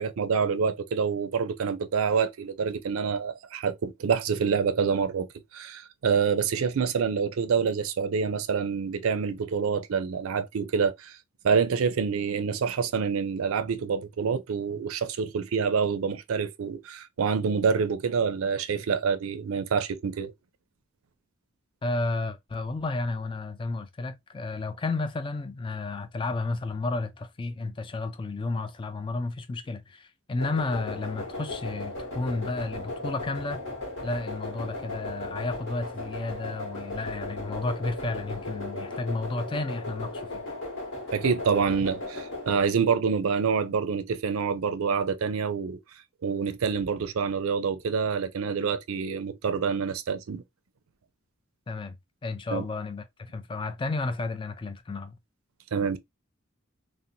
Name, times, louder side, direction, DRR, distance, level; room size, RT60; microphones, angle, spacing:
voice 1, 0.0-5.3 5.5-11.2 11.4-20.3 41.1-45.8 46.2-50.4 52.5-52.6 55.7-56.0, right 6 dB, 75° right, 0.4 m, -27 dB
voice 2, 21.8-33.6 34.0-40.4 51.7-52.0 52.2-55.2, left 3 dB, 25° left, 0.3 m, -32 dB
sound 1, 30.4-42.6, left 2 dB, 55° left, 1.1 m, -36 dB
2.6 x 2.1 x 2.7 m
head